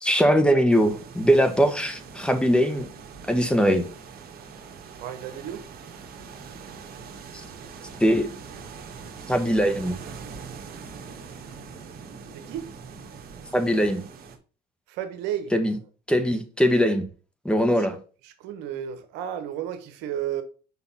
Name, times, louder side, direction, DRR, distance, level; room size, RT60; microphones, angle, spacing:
voice 1, 0.0-2.9 3.3-3.9 7.3-7.4 8.0-8.3 9.3-10.0 13.5-14.0 15.5-15.7 16.1-17.0 17.4-18.0, equal, 5° left, 1.3 m, -21 dB
sound 1, 0.7-14.4, right 5 dB, 60° right, 1.5 m, -42 dB
voice 2, 5.0-5.6 12.3-12.7 14.9-15.5 17.5-17.9 18.2-20.4, right 10 dB, 80° right, 1.1 m, -33 dB
5.9 x 3.9 x 5.8 m
supercardioid pair, 80°, 18 cm